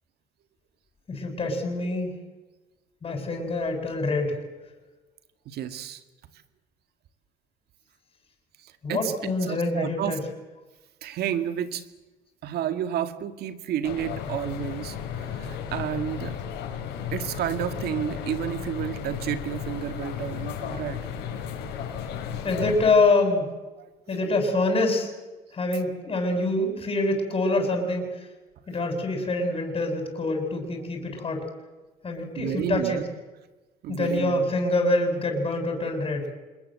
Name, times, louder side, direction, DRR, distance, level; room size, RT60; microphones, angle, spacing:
voice 1, 1.1-2.1 3.0-4.4 8.8-10.2 22.4-23.5 24.1-25.1 25.5-28.3 28.7-31.5 32.0-33.0 33.9-36.3, left 2 dB, 35° left, 4 dB, 7.9 m, -25 dB
voice 2, 5.5-6.0 8.6-10.2 11.0-11.8 12.4-16.4 17.1-21.5 23.8-24.2 32.4-33.0 33.8-34.5, right 10 dB, 70° right, 11 dB, 2.1 m, -31 dB
sound 1, 13.8-22.9, left 8 dB, 85° left, 5.7 m, -34 dB
26.5 x 22.0 x 7.9 m, 1.2 s
cardioid pair, 110°, 17 cm